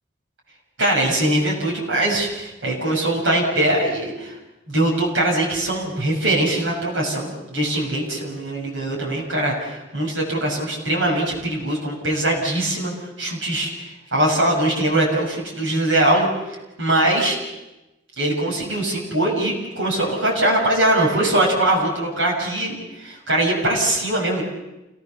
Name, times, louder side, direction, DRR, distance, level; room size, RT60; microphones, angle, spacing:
voice 1, 0.8-4.3 4.7-12.9 13.2-16.3 16.8-17.4 18.2-24.4, right 1 dB, 80° right, -3 dB, 6.7 m, -21 dB
28.5 x 17.0 x 7.1 m, 1.0 s
head